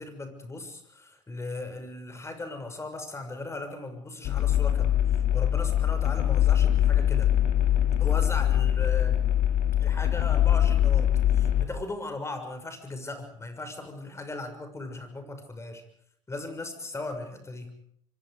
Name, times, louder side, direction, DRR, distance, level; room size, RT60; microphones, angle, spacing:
voice 1, 0.0-7.3 8.0-9.2 9.8-15.8 16.3-17.7, left 2 dB, 15° left, 8 dB, 6.5 m, -38 dB
sound 1, 4.2-11.6, left 11 dB, 55° left, 3.0 m, -23 dB
26.0 x 25.0 x 5.2 m, 0.68 s
hypercardioid pair, 75°, 16 cm